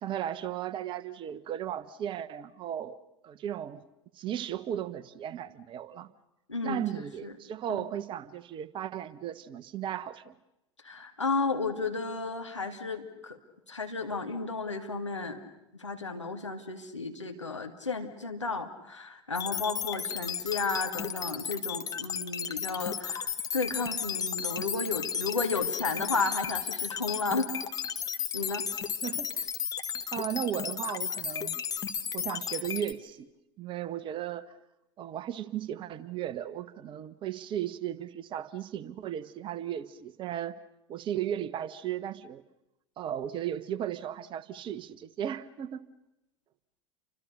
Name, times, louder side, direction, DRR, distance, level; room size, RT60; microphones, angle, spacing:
voice 1, 0.0-3.0 3.2-3.8 4.2-6.1 6.6-10.4 29.0-29.5 30.1-31.6 32.1-33.3 33.6-34.5 35.0-40.5 40.9-42.4 43.0-45.8, right 10 dB, 35° right, 14 dB, 1.3 m, -35 dB
voice 2, 6.5-7.3 7.7-7.9 10.8-13.4 13.7-15.4 15.7-27.5 28.3-28.7, left 4 dB, 85° left, 4 dB, 2.5 m, -33 dB
sound 1, 19.4-32.9, left 8 dB, 25° left, 1.7 m, -34 dB
30.0 x 25.5 x 6.7 m, 0.90 s
figure-of-eight pair, 80°, 15 cm